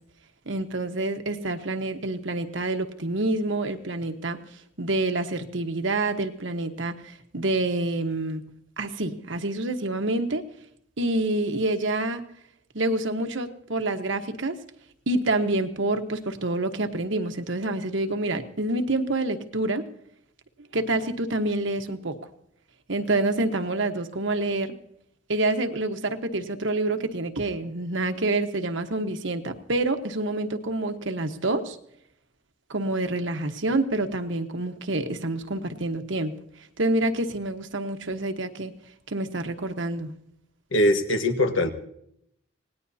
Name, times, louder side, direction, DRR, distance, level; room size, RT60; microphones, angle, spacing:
voice 1, 0.4-4.4 4.8-8.4 8.8-10.4 11.0-12.2 12.7-14.6 15.1-19.9 20.7-22.2 22.9-24.8 25.3-31.8 32.7-36.3 36.8-38.7 39.1-40.1, right 2 dB, 65° right, 7 dB, 1.3 m, -27 dB
voice 2, 40.7-41.7, left 1 dB, 75° left, 6 dB, 1.6 m, -21 dB
27.0 x 18.5 x 2.8 m, 0.74 s
head